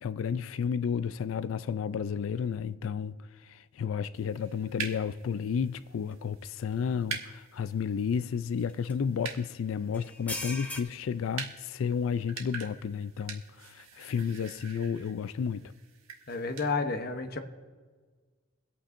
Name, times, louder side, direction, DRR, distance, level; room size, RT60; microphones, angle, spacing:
voice 1, 0.0-3.2 3.4-15.7, left 6 dB, 70° left, 0.3 m, -32 dB
sound 1, 4.1-16.7, right 6 dB, 85° right, 1.3 m, -45 dB
sound 2, 6.1-6.2 6.7-6.8 8.7-8.9 9.9-10.8, left 2 dB, 5° left, 0.8 m, -37 dB
voice 2, 16.3-17.4, left 4 dB, 50° left, 0.8 m, -31 dB
23.5 x 8.6 x 2.5 m
head